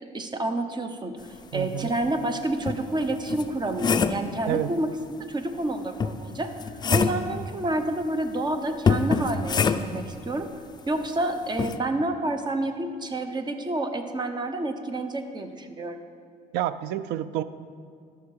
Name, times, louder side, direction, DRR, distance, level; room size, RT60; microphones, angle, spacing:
voice 1, 0.1-1.2 1.5-4.9 5.3-6.5 6.9-10.5 10.9-16.0, right 2 dB, 25° right, 8 dB, 0.8 m, -29 dB
voice 2, 1.5-2.0 4.5-4.7 16.5-17.4, right 12 dB, 85° right, 14 dB, 0.4 m, -28 dB
sound 1, 2.0-2.1 2.7-4.3 6.0-7.3 8.9-10.1 11.6-11.8, left 5 dB, 25° left, 0.4 m, -25 dB
13.0 x 5.8 x 4.8 m, 2.2 s
cardioid pair, 110°, 17 cm